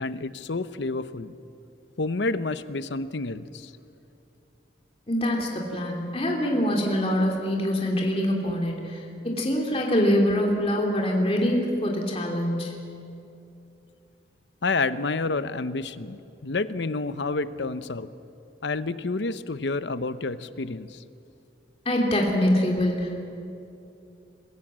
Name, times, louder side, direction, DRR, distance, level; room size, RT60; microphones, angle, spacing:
voice 1, 0.0-1.3 2.0-3.7 14.6-18.1 18.6-21.0, left 3 dB, 75° left, 13 dB, 0.8 m, -29 dB
voice 2, 5.1-12.7 21.8-23.3, equal, 30° left, 0 dB, 2.6 m, -24 dB
26.0 x 15.5 x 7.5 m, 2.7 s
head